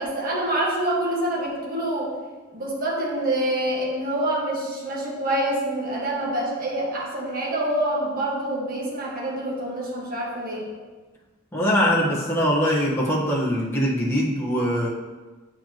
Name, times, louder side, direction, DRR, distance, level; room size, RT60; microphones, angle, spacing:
voice 1, 0.0-2.1 2.5-10.7, right 1 dB, 45° right, -4 dB, 1.5 m, -26 dB
voice 2, 11.5-14.9, equal, 10° left, -5 dB, 1.2 m, -22 dB
9.0 x 5.2 x 2.9 m, 1.3 s
head